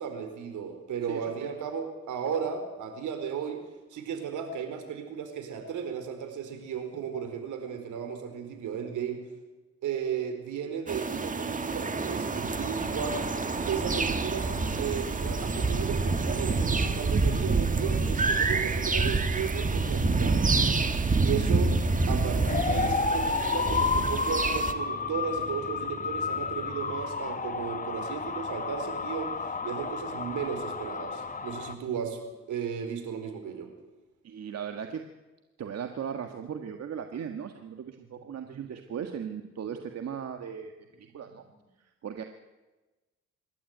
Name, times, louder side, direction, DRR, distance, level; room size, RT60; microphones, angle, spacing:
voice 1, 0.0-3.6 3.9-9.2 9.8-13.2 13.6-14.5 14.8-20.5 21.2-21.7 22.1-33.7 38.1-38.2 38.5-38.7, right 7 dB, 75° right, 7 dB, 4.5 m, -35 dB
voice 2, 1.1-1.5 34.2-35.0 35.6-40.7 41.0-41.4 42.0-42.2, right 8 dB, 55° right, 5 dB, 1.7 m, -37 dB
sound 1, 10.9-24.7, right 3 dB, 25° right, 1.8 m, -27 dB
sound 2, 11.8-27.2, equal, ahead, 6.3 m, -47 dB
sound 3, 22.5-31.7, left 4 dB, 25° left, 1.7 m, -31 dB
26.0 x 12.5 x 9.4 m, 1.1 s
cardioid pair, 90°, 30 cm